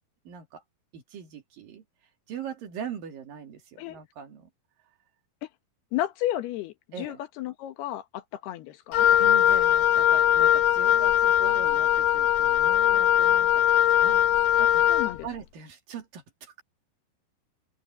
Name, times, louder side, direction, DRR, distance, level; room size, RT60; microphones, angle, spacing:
voice 1, 0.3-0.6 0.9-1.8 2.3-4.5 6.9-7.2 9.1-14.9 15.2-16.6, right 7 dB, 65° right, 4.0 m, -41 dB
voice 2, 5.9-9.1 14.9-15.3, left 13 dB, 90° left, 3.4 m, -33 dB
Wind instrument woodwind instrument, 8.9-15.2, left 11 dB, 70° left, 2.8 m, -21 dB
open air
omnidirectional pair, 4.5 m